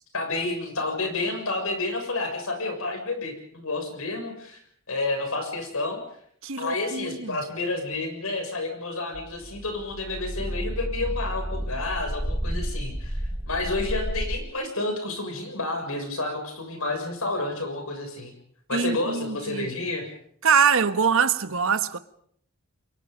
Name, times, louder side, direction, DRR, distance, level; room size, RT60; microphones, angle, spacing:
voice 1, 0.1-4.6 4.9-6.0 6.6-13.2 13.5-18.3 18.7-20.1, left 2 dB, 75° left, 6.8 m, -30 dB
voice 2, 6.4-7.4 18.7-19.7 20.4-22.0, right 6 dB, 65° right, 1.2 m, -23 dB
sound 1, 9.1-14.4, equal, 15° right, 1.2 m, -31 dB
29.0 x 23.0 x 5.3 m
head